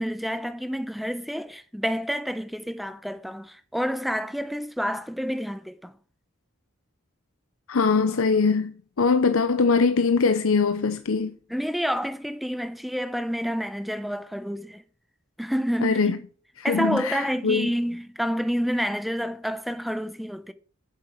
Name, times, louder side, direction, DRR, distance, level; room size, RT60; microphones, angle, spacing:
voice 1, 0.0-6.0 11.5-14.8 15.4-16.2 16.6-20.5, equal, ahead, 0.7 m, -29 dB
voice 2, 7.7-11.3 15.8-16.2 16.6-17.7, left 4 dB, 90° left, 0.7 m, -22 dB
8.8 x 7.6 x 6.5 m
head